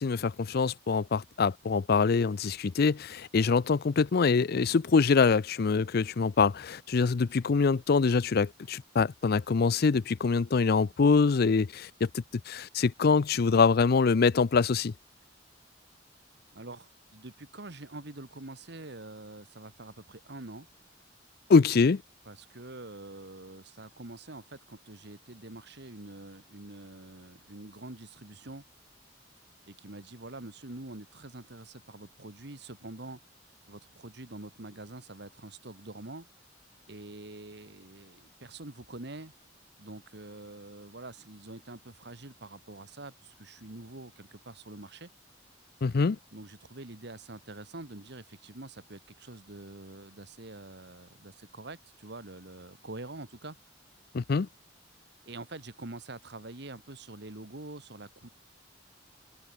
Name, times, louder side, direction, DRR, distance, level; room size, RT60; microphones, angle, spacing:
voice 1, 0.0-12.1 12.5-14.9 21.5-22.0 45.8-46.2 54.1-54.5, left 5 dB, 55° left, 0.5 m, -24 dB
voice 2, 16.5-20.7 22.3-28.6 29.6-33.2 33.7-36.3 36.9-39.3 39.8-45.1 46.3-53.6 55.3-58.3, right 2 dB, 60° right, 2.0 m, -45 dB
open air
head